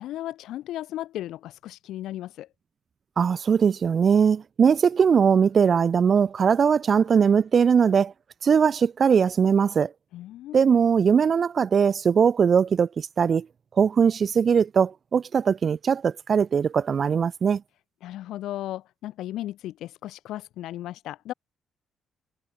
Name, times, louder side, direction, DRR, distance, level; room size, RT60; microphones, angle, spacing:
voice 1, 0.0-2.5 10.1-10.6 18.0-21.3, left 14 dB, 85° left, 3.7 m, -35 dB
voice 2, 3.2-8.1 8.4-9.9 10.5-13.5 13.8-17.6, right 6 dB, 45° right, 0.8 m, -20 dB
cardioid pair, 90°, 0 cm